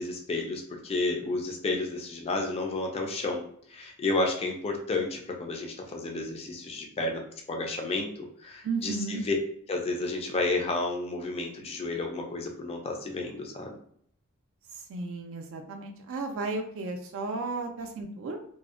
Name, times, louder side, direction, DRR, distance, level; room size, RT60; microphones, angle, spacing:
voice 1, 0.0-3.4 3.7-7.2 7.5-8.1 8.4-9.4 9.7-13.7, left 2 dB, 25° left, 2 dB, 0.3 m, -31 dB
voice 2, 8.6-9.2 14.8-18.4, right 3 dB, 60° right, 4 dB, 0.3 m, -34 dB
2.5 x 2.0 x 2.4 m, 0.64 s
head